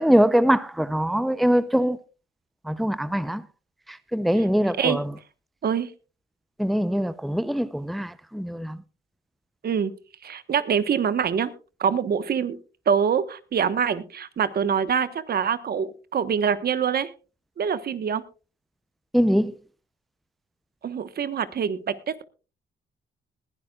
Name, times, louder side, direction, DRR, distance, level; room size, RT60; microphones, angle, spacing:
voice 1, 0.0-2.0 2.7-3.4 3.9-5.1 6.6-8.8 19.1-19.5, equal, ahead, 0.6 m, -22 dB
voice 2, 10.2-11.5 11.8-12.6 12.9-17.1 17.6-18.2 20.8-22.2, right 7 dB, 55° right, 1.2 m, -25 dB
20.5 x 11.5 x 2.3 m
cardioid pair, 75°, 19 cm